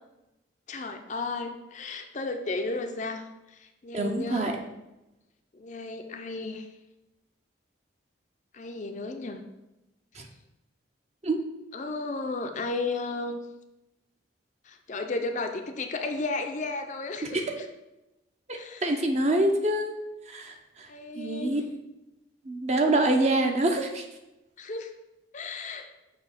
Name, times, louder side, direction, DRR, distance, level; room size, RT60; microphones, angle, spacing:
voice 1, 0.7-3.2 3.5-4.5 5.5-6.7 8.5-9.4 11.7-13.4 14.7-17.7 18.5-18.9 20.9-21.5 24.6-24.9 25.3-25.9, left 3 dB, 40° left, 5 dB, 0.5 m, -34 dB
voice 2, 3.9-4.5 10.2-10.3 11.2-11.4 17.2-17.4 18.5-19.9 20.3-20.6 21.2-21.6 22.5-24.0, right 1 dB, 35° right, 3 dB, 0.7 m, -25 dB
6.7 x 2.9 x 5.8 m, 0.96 s
head